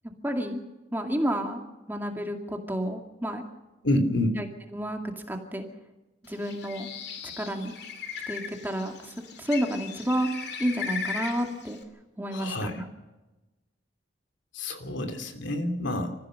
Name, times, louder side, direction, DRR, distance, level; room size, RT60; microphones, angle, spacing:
voice 1, 0.2-0.6 0.9-1.6 1.9-3.4 4.4-4.5 4.7-5.0 5.3-5.6 6.2-6.9 7.4-7.7 8.3-10.3 10.6-11.8 12.2-12.9, equal, 10° right, 3 dB, 2.2 m, -30 dB
voice 2, 3.8-4.4 12.3-12.7 14.5-16.2, left 1 dB, 80° left, 6 dB, 3.0 m, -28 dB
Bird, 6.3-11.8, left 6 dB, 60° left, 2.8 m, -38 dB
27.5 x 15.0 x 6.5 m, 1.1 s
head